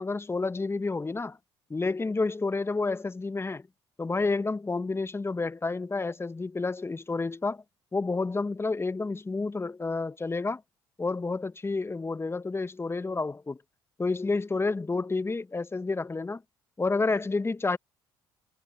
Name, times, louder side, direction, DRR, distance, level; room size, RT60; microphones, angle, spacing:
voice 1, 0.0-1.4 1.7-3.7 4.0-7.6 7.9-10.6 11.0-13.6 14.0-16.4 16.8-17.8, left 3 dB, 20° left, 1.1 m, -30 dB
hypercardioid pair, 55°, 13 cm